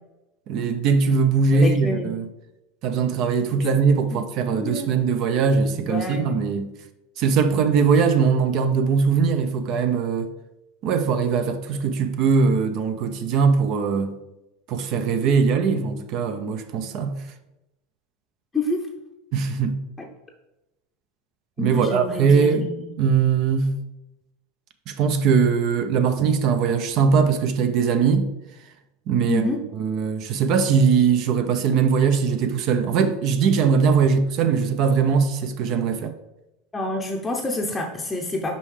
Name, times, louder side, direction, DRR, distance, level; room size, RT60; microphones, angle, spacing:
voice 1, 0.5-2.3 2.8-6.7 7.2-10.3 10.8-14.2 14.7-17.2 19.3-19.8 21.6-22.7 23.0-23.7 24.9-28.3 29.1-29.5 29.7-36.1, right 5 dB, 50° right, 0.6 m, -21 dB
voice 2, 1.5-2.1 3.7-3.8 4.1-4.2 4.5-4.9 5.7-6.4 18.5-18.9 20.0-20.1 21.6-22.9 29.3-29.6 36.7-38.6, left 2 dB, 15° left, 0.7 m, -28 dB
5.4 x 5.4 x 3.3 m
supercardioid pair, 120°, 0 cm